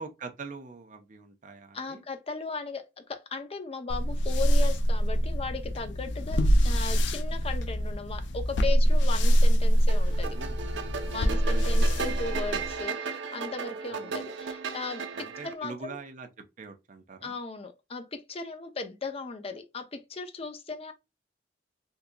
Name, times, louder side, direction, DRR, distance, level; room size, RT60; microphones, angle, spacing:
voice 1, 0.0-2.0 6.4-6.5 10.3-10.6 11.3-11.8 13.9-14.2 15.1-17.4, right 4 dB, 45° right, 0.6 m, -44 dB
voice 2, 1.7-10.3 11.1-15.1 15.4-16.0 17.2-20.9, left 4 dB, 35° left, 0.6 m, -37 dB
sound 1, 3.9-12.8, equal, 90° left, 0.5 m, -24 dB
sound 2, 9.9-15.5, right 5 dB, 85° right, 0.6 m, -35 dB
3.7 x 2.8 x 2.2 m
head